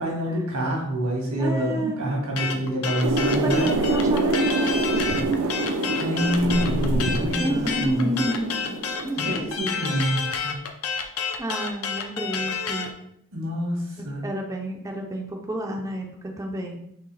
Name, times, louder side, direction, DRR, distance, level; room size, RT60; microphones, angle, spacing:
voice 1, 0.0-3.7 6.0-8.1 9.2-10.6 13.3-14.2, equal, 85° right, -1 dB, 1.7 m, -27 dB
voice 2, 1.4-2.2 3.4-5.4 7.3-8.8 9.0-9.3 11.4-12.9 14.2-16.8, right 1 dB, 15° right, 1 dB, 0.4 m, -30 dB
sound 1, 2.4-12.9, left 6 dB, 65° left, 0.6 m, -29 dB
sound 2, 3.0-9.4, right 2 dB, 70° right, 0.5 m, -25 dB
4.4 x 3.3 x 3.3 m, 0.75 s
head